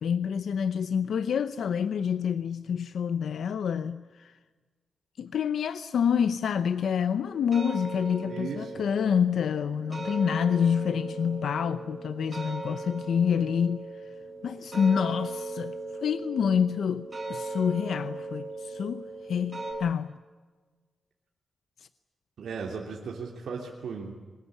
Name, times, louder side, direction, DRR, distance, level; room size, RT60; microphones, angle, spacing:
voice 1, 0.0-4.4 5.2-13.8 14.4-20.2, left 7 dB, 75° left, 0.7 m, -27 dB
sound 1, 7.3-19.7, right 2 dB, 25° right, 7.9 m, -38 dB
voice 2, 8.2-8.7 22.4-24.2, right 5 dB, 75° right, 3.0 m, -36 dB
23.0 x 20.5 x 9.6 m
wide cardioid pair, 135°, 0 cm